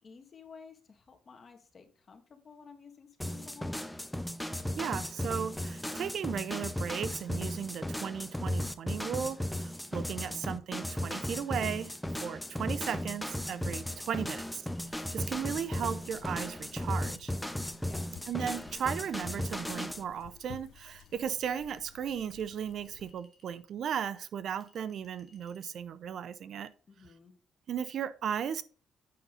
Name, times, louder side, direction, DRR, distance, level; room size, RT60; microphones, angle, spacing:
voice 1, 0.0-3.8 4.6-4.8 10.0-10.5 17.9-18.1 26.9-27.3, left 5 dB, 40° left, 1.7 m, -54 dB
sound 1, 3.2-20.0, left 1 dB, 5° left, 0.7 m, -36 dB
voice 2, 4.8-11.9 12.2-14.5 15.1-17.3 18.3-26.7 27.7-28.6, right 8 dB, 65° right, 0.6 m, -36 dB
Chink clink, 14.7-15.6 16.5-17.3 18.6-19.8 20.8-21.9 22.6-23.6 24.6-25.7, equal, 30° right, 2.5 m, -66 dB
sound 2, 14.8-23.1, left 10 dB, 75° left, 0.6 m, -55 dB
8.6 x 5.5 x 3.9 m
cardioid pair, 90°, 0 cm